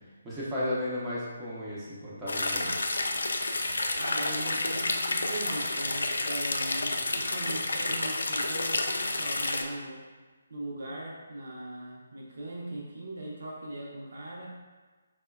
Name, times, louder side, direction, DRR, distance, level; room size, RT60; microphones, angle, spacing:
voice 1, 0.2-2.7, left 1 dB, 10° right, -10 dB, 0.7 m, -34 dB
sound 1, 2.3-9.6, left 2 dB, 70° left, 0.3 m, -30 dB
voice 2, 4.0-10.0 10.5-14.5, right 1 dB, 60° right, -3 dB, 0.7 m, -39 dB
4.3 x 2.2 x 2.3 m, 1.3 s
figure-of-eight pair, 145°, 0 cm